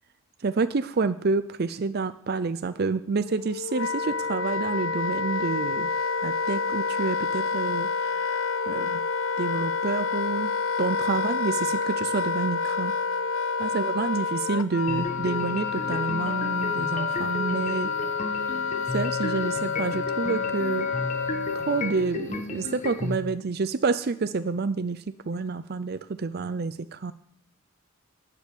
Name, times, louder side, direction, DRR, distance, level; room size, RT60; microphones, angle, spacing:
voice 1, 0.4-5.9 6.2-8.4 8.7-9.0 9.4-10.5 10.8-12.9 13.6-17.9 18.9-20.9 21.6-27.1, right 4 dB, 45° right, 12 dB, 0.5 m, -28 dB
Wind instrument woodwind instrument, 3.2-22.1, left 5 dB, 65° left, 0.6 m, -28 dB
Bells Loop, 14.9-23.2, left 2 dB, 35° left, 1.3 m, -34 dB
11.5 x 6.8 x 9.7 m, 0.69 s
head